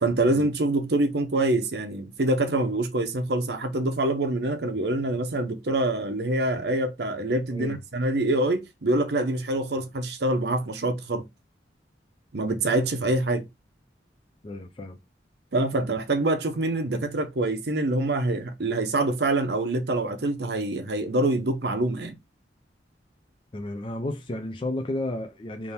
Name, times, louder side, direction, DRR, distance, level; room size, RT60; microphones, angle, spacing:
voice 1, 0.0-11.2 12.3-13.5 15.5-22.2, right 2 dB, 65° right, 0.7 m, -25 dB
voice 2, 7.5-7.8 12.4-12.6 14.4-15.0 23.5-25.7, left 1 dB, 30° left, 0.5 m, -33 dB
3.6 x 2.7 x 4.1 m
head